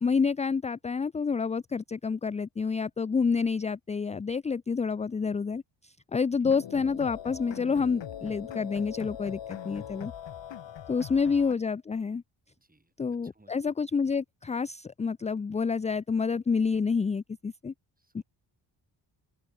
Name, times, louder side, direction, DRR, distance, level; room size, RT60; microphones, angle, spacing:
voice 1, 0.0-10.1 10.9-12.2 13.0-17.7 18.1-18.2, left 5 dB, 15° left, 0.3 m, -28 dB
sound 1, 6.4-11.5, left 10 dB, 65° left, 1.7 m, -41 dB
voice 2, 12.6-12.9 13.2-13.6 18.0-18.2, right 2 dB, 20° right, 5.3 m, -64 dB
open air
cardioid pair, 75°, 47 cm